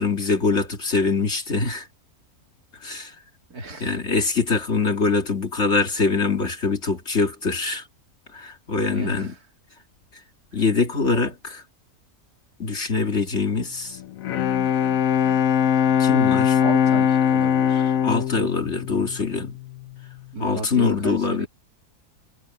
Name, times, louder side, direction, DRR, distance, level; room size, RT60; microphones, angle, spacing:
voice 1, 0.0-1.9 2.8-3.1 3.8-7.9 8.3-9.3 10.5-11.6 12.6-14.0 16.0-16.6 18.0-19.6 20.4-21.5, left 4 dB, 50° left, 2.6 m, -23 dB
voice 2, 3.5-3.9 8.9-9.4 16.6-18.0 20.3-21.5, right 3 dB, 85° right, 3.4 m, -33 dB
Bowed string instrument, 14.0-19.8, left 8 dB, 70° left, 1.1 m, -21 dB
omnidirectional pair, 1.6 m